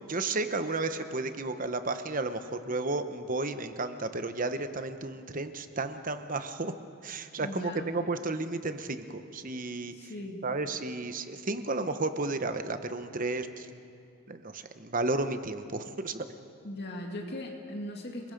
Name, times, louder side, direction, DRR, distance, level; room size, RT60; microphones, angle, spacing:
voice 1, 0.1-6.7 7.0-10.1 10.4-13.7 14.3-16.2, right 2 dB, 35° right, 9 dB, 1.0 m, -33 dB
voice 2, 7.4-7.9 9.9-10.4 16.6-18.3, left 1 dB, 50° left, 1 dB, 2.3 m, -39 dB
30.0 x 21.0 x 5.3 m, 2.6 s
head